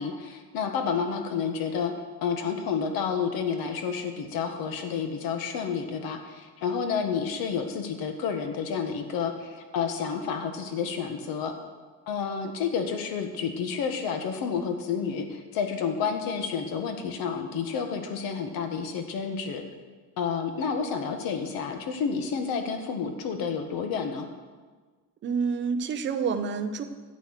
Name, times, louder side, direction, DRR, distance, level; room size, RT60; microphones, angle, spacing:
voice 1, 0.0-1.9 2.2-11.5 12.1-19.6 20.2-24.3, left 6 dB, 65° left, 6 dB, 1.7 m, -30 dB
voice 2, 25.2-26.8, right 5 dB, 30° right, 8 dB, 0.7 m, -28 dB
13.0 x 8.1 x 6.6 m, 1.4 s
cardioid pair, 175°, 37 cm